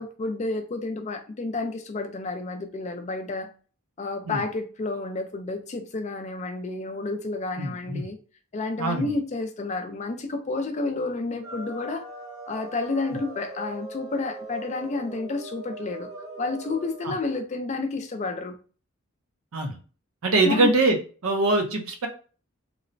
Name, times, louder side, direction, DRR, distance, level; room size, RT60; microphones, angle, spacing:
voice 1, 0.0-3.5 4.0-8.2 8.5-12.0 12.5-16.1 16.4-18.6 20.4-20.7, left 3 dB, 35° left, 7 dB, 0.3 m, -30 dB
voice 2, 7.6-8.0 8.8-9.1 17.0-17.1 19.5-19.8 20.2-21.0 21.2-22.1, right 2 dB, 80° right, 4 dB, 0.6 m, -23 dB
sound 1, 11.4-17.1, right 2 dB, 15° right, 0.6 m, -40 dB
2.9 x 2.0 x 2.5 m, 0.38 s
head